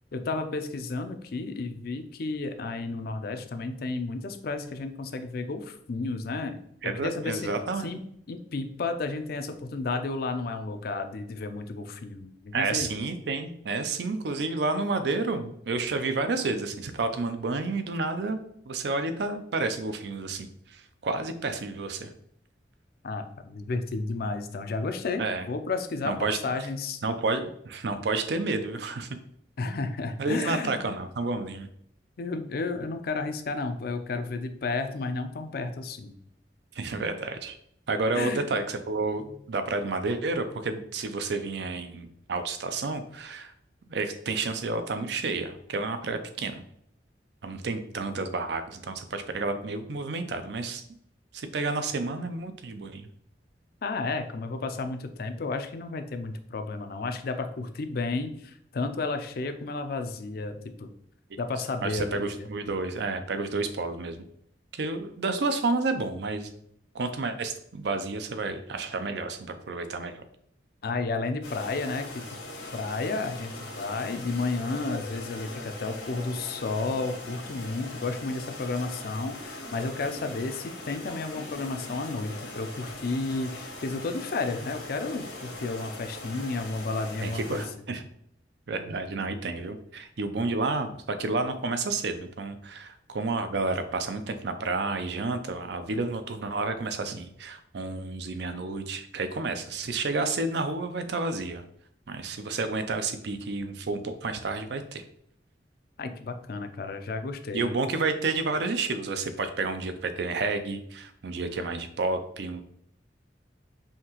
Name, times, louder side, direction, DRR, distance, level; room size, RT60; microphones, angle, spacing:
voice 1, 0.1-6.6 6.8-7.5 7.8-8.0 8.3-12.9 23.0-27.0 29.6-30.8 32.2-36.1 38.1-38.5 53.8-60.9 61.4-62.5 70.8-87.6 106.0-107.7, left 3 dB, 55° left, 8 dB, 0.4 m, -32 dB
voice 2, 6.8-7.9 12.5-18.4 18.7-22.1 25.2-25.5 26.0-26.4 27.0-29.1 30.2-31.7 36.8-37.5 37.9-43.5 43.9-46.6 47.4-50.8 51.3-53.1 61.8-64.3 64.7-66.5 66.9-70.2 87.2-88.0 88.7-101.6 102.1-105.0 107.5-112.6, right 3 dB, 65° right, 9 dB, 0.5 m, -30 dB
sound 1, 71.4-87.7, left 2 dB, 85° left, 1.2 m, -41 dB
5.7 x 2.7 x 2.9 m, 0.70 s
head